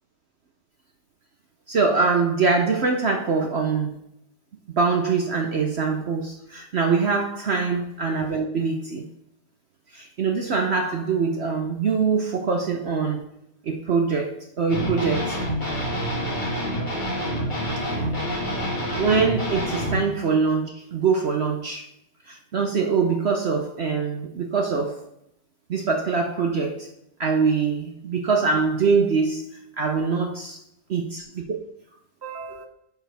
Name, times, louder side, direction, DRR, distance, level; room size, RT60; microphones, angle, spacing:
voice 1, 1.7-4.0 4.8-9.0 9.9-13.2 13.6-15.4 18.9-21.8 22.3-25.0 25.7-26.9 27.2-29.5 29.8-30.6 30.9-31.6 32.2-32.6, right 5 dB, 70° right, 2 dB, 0.6 m, -23 dB
sound 1, 14.7-19.9, equal, 25° left, 1.8 m, -27 dB
10.5 x 4.7 x 3.4 m, 0.76 s
omnidirectional pair, 2.0 m